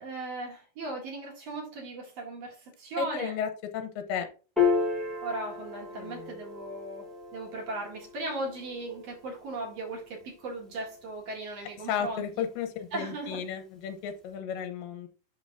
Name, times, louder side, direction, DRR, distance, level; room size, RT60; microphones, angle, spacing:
voice 1, 0.0-3.3 5.2-12.3 12.9-13.4, right 2 dB, 50° right, 2.7 m, -37 dB
voice 2, 3.0-4.3 5.9-6.3 11.9-15.1, left 8 dB, 90° left, 2.6 m, -34 dB
Piano, 4.6-11.2, left 5 dB, ahead, 0.6 m, -33 dB
11.0 x 3.9 x 2.6 m
omnidirectional pair, 3.9 m